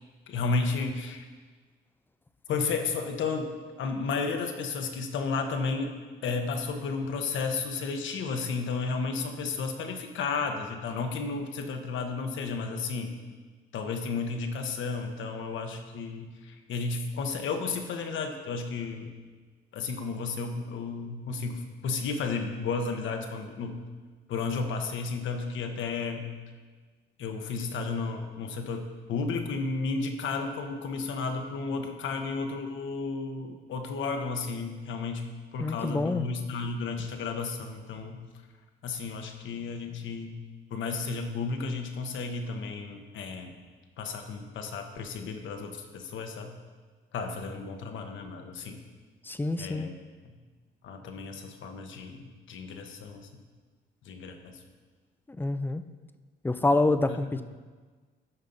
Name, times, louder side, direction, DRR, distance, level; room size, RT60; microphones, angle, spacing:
voice 1, 0.3-1.3 2.5-3.5 3.8-6.0 6.2-13.1 13.7-19.1 19.7-23.8 24.3-26.3 27.2-28.8 29.1-35.2 35.5-38.2 38.8-40.4 40.7-43.6 44.0-46.5 47.1-48.8 49.6-49.9 50.8-53.3 54.0-54.6, left 4 dB, 75° left, 5 dB, 1.1 m, -33 dB
voice 2, 35.6-36.3 49.2-49.9 55.3-55.8 56.4-57.4, left 2 dB, 10° left, 11 dB, 0.5 m, -27 dB
14.0 x 5.5 x 4.0 m, 1.4 s
cardioid pair, 90°, 20 cm